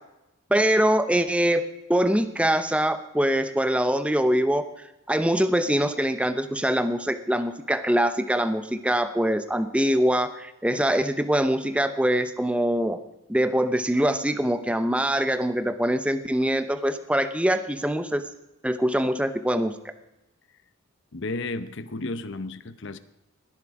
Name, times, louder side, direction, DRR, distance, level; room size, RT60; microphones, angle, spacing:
voice 1, 0.5-1.6 1.9-13.0 13.3-18.2 18.6-19.9, right 1 dB, 5° right, 10 dB, 0.7 m, -23 dB
voice 2, 21.1-23.0, left 2 dB, 55° left, 13 dB, 0.8 m, -33 dB
20.0 x 11.0 x 4.8 m, 0.94 s
head